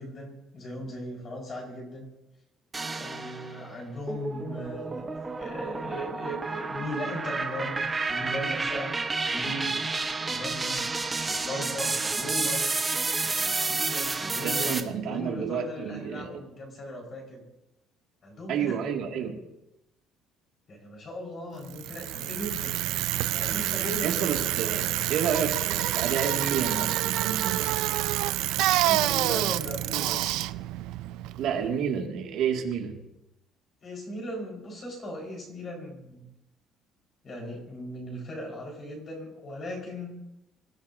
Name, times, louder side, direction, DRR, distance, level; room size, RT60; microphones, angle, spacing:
voice 1, 0.0-2.1 2.9-5.1 5.4-7.8 8.1-9.0 9.3-9.9 10.2-10.9 11.2-12.6 13.2-14.8 15.0-17.4 18.2-18.8 20.7-22.8 23.3-24.2 28.8-30.4 33.8-36.3 37.2-40.2, equal, 30° left, -1 dB, 5.1 m, -38 dB
sound 1, 2.7-3.6 4.1-14.8, right 3 dB, 15° right, 1.0 m, -30 dB
voice 2, 14.4-16.4 18.5-19.4 24.0-27.7 31.4-33.1, right 7 dB, 60° right, 1 dB, 2.4 m, -30 dB
Bicycle, 21.7-31.8, right 15 dB, 85° right, 0.4 m, -28 dB
26.5 x 15.0 x 2.8 m, 0.90 s
cardioid pair, 180°, 0 cm